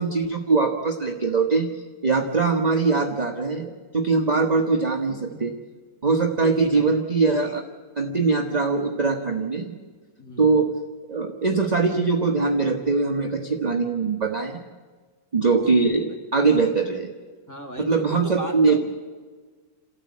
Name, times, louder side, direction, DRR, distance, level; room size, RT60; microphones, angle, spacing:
voice 1, 0.0-1.7 2.0-5.5 6.0-7.6 8.0-9.7 10.4-10.7 11.1-14.6 15.3-17.1 17.8-18.8, right 4 dB, 25° right, 3 dB, 1.1 m, -22 dB
voice 2, 5.1-5.4 6.4-6.9 10.2-10.6 15.7-15.9 17.5-18.8, right 1 dB, 10° left, 0 dB, 2.6 m, -36 dB
29.0 x 13.5 x 8.5 m, 1.4 s
omnidirectional pair, 2.1 m